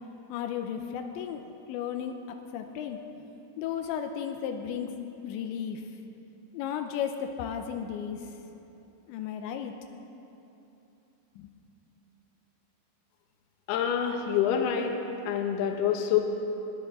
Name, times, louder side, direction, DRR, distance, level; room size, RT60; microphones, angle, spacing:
voice 1, 0.3-1.4 1.7-2.1 2.5-3.0 3.6-5.8 6.5-8.2 9.1-9.7 11.4-11.5, left 8 dB, 90° left, 5 dB, 3.0 m, -34 dB
voice 2, 13.7-14.9 15.3-16.2, left 9 dB, 70° left, 3 dB, 2.9 m, -26 dB
20.5 x 15.5 x 3.7 m, 2.9 s
omnidirectional pair, 5.2 m